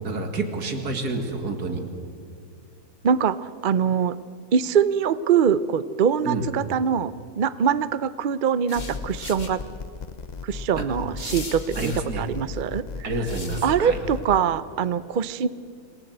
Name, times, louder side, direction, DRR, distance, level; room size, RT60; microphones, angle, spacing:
voice 1, 0.0-1.8 6.2-6.5 10.8-10.9 11.8-12.3 13.0-14.0, right 2 dB, 80° right, 5 dB, 2.6 m, -28 dB
voice 2, 3.0-4.1 4.5-9.6 10.4-12.8 13.6-15.5, right 7 dB, 55° right, 16 dB, 0.5 m, -23 dB
sound 1, 8.7-9.5 11.2-12.0 13.2-13.7, left 3 dB, 30° left, 1.7 m, -38 dB
sound 2, 8.8-14.4, left 5 dB, 85° left, 0.3 m, -36 dB
27.0 x 18.0 x 8.0 m, 2.2 s
omnidirectional pair, 1.6 m